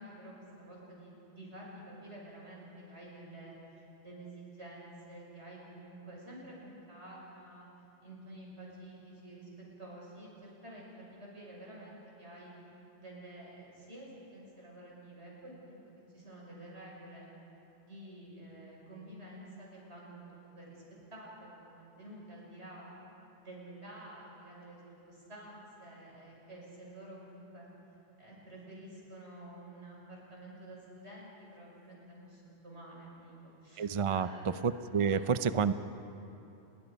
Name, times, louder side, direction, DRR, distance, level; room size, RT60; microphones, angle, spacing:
voice 1, 0.0-7.7 8.0-9.5 9.8-12.5 12.9-17.3 17.8-20.8 21.1-22.9 23.4-24.8 25.0-27.7 28.2-34.7 35.1-35.3, right 1 dB, 80° right, -4 dB, 6.5 m, -50 dB
voice 2, 33.8-34.3 34.6-35.7, right 6 dB, 40° right, 12 dB, 0.5 m, -29 dB
30.0 x 21.5 x 5.2 m, 2.9 s
omnidirectional pair, 1.1 m